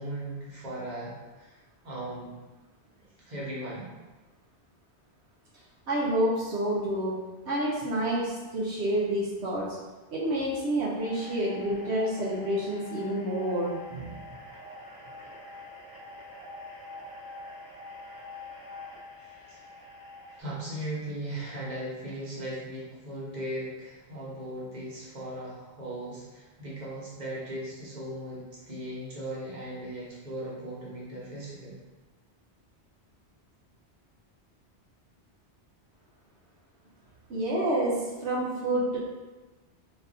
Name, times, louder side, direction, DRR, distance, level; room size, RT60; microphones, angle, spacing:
voice 1, 0.0-1.6 1.8-2.3 3.3-3.9 19.2-19.6 20.4-31.8, right 1 dB, 40° right, -7 dB, 1.2 m, -38 dB
voice 2, 5.9-7.2 7.4-9.7 10.1-14.1 37.3-39.0, right 1 dB, 75° right, -6 dB, 1.0 m, -28 dB
sound 1, 11.0-20.4, left 2 dB, 20° left, 0.7 m, -45 dB
3.9 x 3.4 x 2.6 m, 1.2 s
omnidirectional pair, 1.1 m